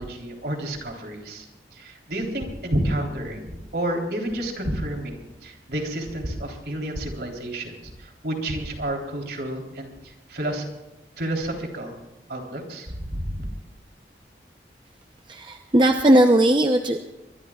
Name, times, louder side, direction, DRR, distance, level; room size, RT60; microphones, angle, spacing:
voice 1, 0.0-1.5 1.7-10.7 11.2-12.0 12.3-13.4, right 1 dB, 65° right, 1 dB, 3.7 m, -30 dB
voice 2, 15.3-17.0, right 1 dB, 25° right, 4 dB, 0.7 m, -18 dB
24.0 x 22.5 x 2.4 m, 1.0 s
head